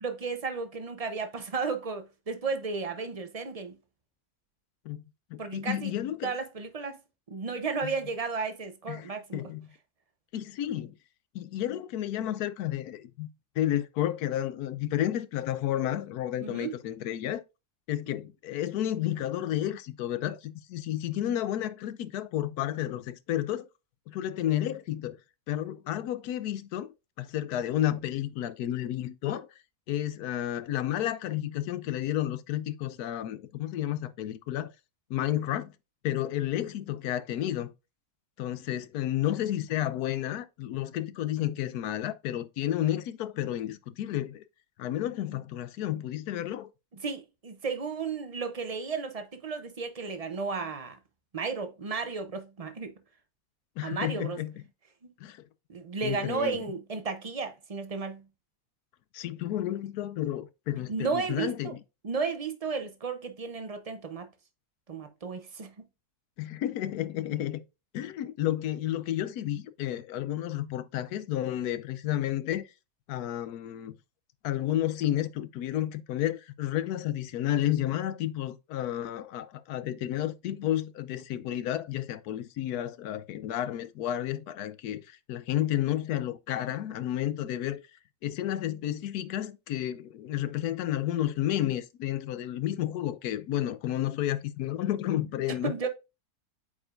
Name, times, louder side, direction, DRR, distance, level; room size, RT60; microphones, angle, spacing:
voice 1, 0.0-3.8 5.4-5.9 6.2-7.0 7.3-9.4 16.4-16.7 47.0-51.0 51.3-52.9 53.8-54.4 55.7-58.2 60.9-61.7 62.0-64.3 64.9-65.7 95.6-95.9, right 4 dB, 35° right, 0.6 m, -33 dB
voice 2, 5.3-6.3 7.8-7.9 8.9-9.7 10.3-10.9 11.3-13.3 13.6-17.4 17.9-23.7 24.1-25.2 25.5-26.9 27.2-29.5 29.9-34.7 35.1-35.7 36.0-37.7 38.4-44.4 44.8-46.7 53.8-54.5 55.2-55.4 56.0-56.7 59.1-61.8 66.4-67.6 67.9-72.6 73.1-73.9 74.4-87.8 88.2-95.7, left 12 dB, 80° left, 1.1 m, -31 dB
8.4 x 4.9 x 2.5 m
omnidirectional pair, 1.7 m